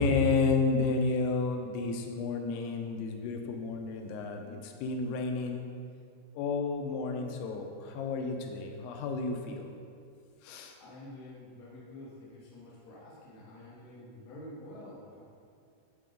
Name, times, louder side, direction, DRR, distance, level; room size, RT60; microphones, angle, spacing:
voice 1, 0.0-5.7 6.3-9.7 10.4-10.8, left 4 dB, 90° left, 3 dB, 3.0 m, -31 dB
voice 2, 10.8-15.2, left 1 dB, 65° left, -7 dB, 1.7 m, -48 dB
10.5 x 3.8 x 5.1 m, 2.4 s
omnidirectional pair, 5.3 m